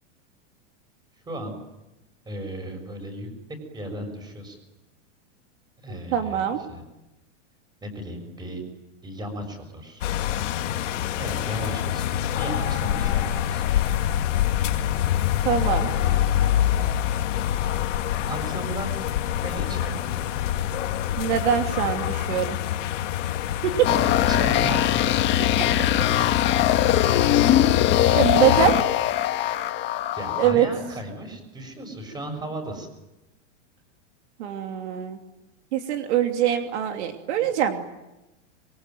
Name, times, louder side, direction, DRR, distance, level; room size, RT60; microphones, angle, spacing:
voice 1, 1.3-1.6 2.2-3.3 3.7-4.6 5.8-6.8 7.8-8.6 9.0-10.2 11.2-12.0 12.4-14.0 15.8-16.3 18.2-19.0 19.3-20.2 23.8-25.3 30.1-32.9, right 1 dB, 10° right, 5 dB, 6.5 m, -35 dB
voice 2, 5.9-6.6 15.4-15.9 21.2-22.6 23.8-23.9 28.1-28.8 30.4-30.7 34.4-35.2 35.7-37.8, right 10 dB, 65° right, 5 dB, 3.0 m, -23 dB
sound 1, 10.0-28.7, left 11 dB, 75° left, 2.5 m, -26 dB
sound 2, 23.8-30.5, left 12 dB, 30° left, 1.8 m, -21 dB
26.0 x 23.5 x 9.3 m, 0.98 s
supercardioid pair, 155°, 37 cm